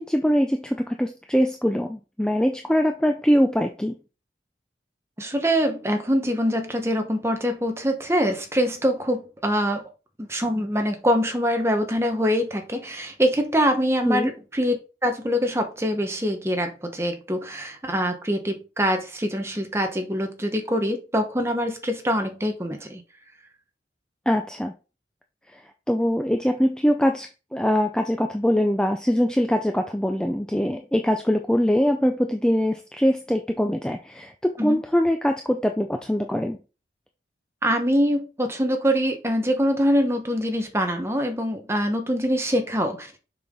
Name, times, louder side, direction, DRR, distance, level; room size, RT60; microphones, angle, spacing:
voice 1, 0.0-4.0 14.0-14.3 24.3-24.7 25.9-36.6, equal, 5° left, 0.5 m, -23 dB
voice 2, 5.2-9.8 10.3-23.0 34.6-34.8 37.6-43.2, equal, 15° right, 1.1 m, -24 dB
6.8 x 5.7 x 3.8 m
head